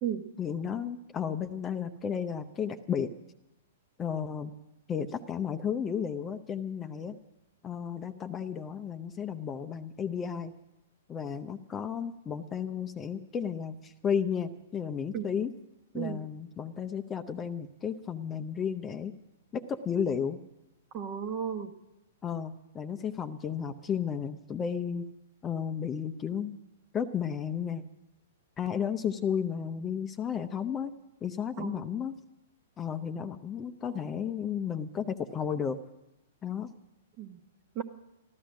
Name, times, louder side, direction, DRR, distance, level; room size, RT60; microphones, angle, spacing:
voice 1, 0.4-3.1 4.0-4.5 4.9-7.2 7.6-10.5 11.1-15.5 15.9-19.1 19.5-20.4 22.2-25.1 25.4-26.6 26.9-27.8 28.6-30.9 31.2-32.1 32.8-35.8 36.4-36.7, left 7 dB, 20° left, 10 dB, 0.7 m, -33 dB
voice 2, 20.9-21.7 31.6-32.0 37.2-37.4 37.7-37.8, right 8 dB, 35° right, 7 dB, 1.2 m, -34 dB
14.0 x 12.5 x 6.2 m, 0.94 s
figure-of-eight pair, 110°, 0 cm